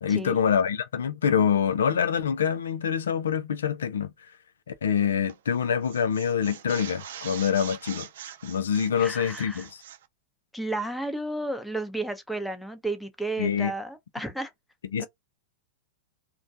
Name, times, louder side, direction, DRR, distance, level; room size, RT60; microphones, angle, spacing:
voice 1, 0.0-4.1 4.7-8.1 8.4-9.7 13.4-13.7 14.9-15.1, left 7 dB, 85° left, 0.5 m, -25 dB
sound 1, 5.3-5.5 5.8-10.1, right 10 dB, 75° right, 0.4 m, -43 dB
voice 2, 9.0-9.7 10.5-14.5 15.0-15.1, right 2 dB, 5° left, 0.7 m, -32 dB
2.3 x 2.2 x 2.6 m
hypercardioid pair, 120°, 0 cm